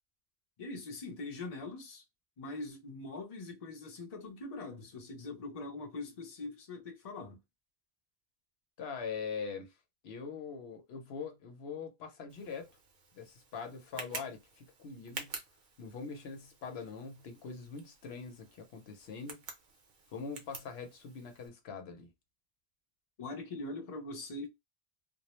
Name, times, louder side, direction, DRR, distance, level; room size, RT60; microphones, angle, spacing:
voice 1, 0.6-2.0 2.4-7.4 23.2-24.5, left 2 dB, 45° left, 0.6 m, -42 dB
voice 2, 8.8-9.7 10.0-12.7 13.1-15.4 15.8-19.4 20.1-22.1, left 5 dB, 85° left, 0.9 m, -43 dB
Tick, 12.3-21.5, right 4 dB, 60° right, 0.9 m, -49 dB
2.3 x 2.0 x 2.9 m
omnidirectional pair, 1.0 m